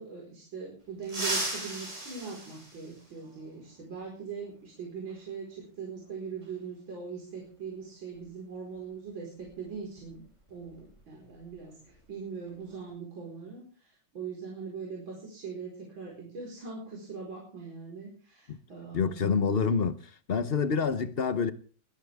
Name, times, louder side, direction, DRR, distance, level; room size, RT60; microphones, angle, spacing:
voice 1, 0.0-10.2 10.5-19.5, right 5 dB, 70° right, 5.5 m, -41 dB
sound 1, 1.0-3.4 5.1-5.2 6.4-6.5 8.1-8.3 8.7-8.9 9.4-11.5 11.8-12.1 12.5-12.9, right 1 dB, 35° right, 6.3 m, -37 dB
voice 2, 18.9-19.9 20.3-21.5, left 5 dB, 45° left, 0.8 m, -27 dB
21.5 x 14.5 x 3.5 m
omnidirectional pair, 2.2 m